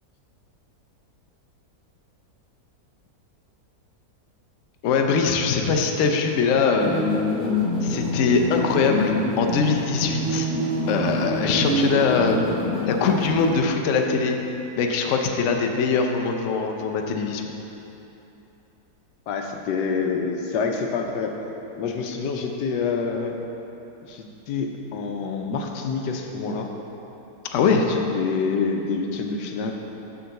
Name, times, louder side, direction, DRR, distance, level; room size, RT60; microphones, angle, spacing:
voice 1, 4.8-7.0 7.8-10.5 10.9-12.4 12.9-14.4 14.8-17.5 27.5-27.8, left 5 dB, 65° left, 3 dB, 0.8 m, -22 dB
sound 1, 6.8-13.5, equal, 50° right, 1.6 m, -26 dB
voice 2, 19.3-21.4 21.8-23.4 24.0-26.7 27.6-29.7, left 5 dB, 90° left, 3 dB, 1.3 m, -27 dB
6.9 x 3.9 x 6.4 m, 3.0 s
omnidirectional pair, 1.8 m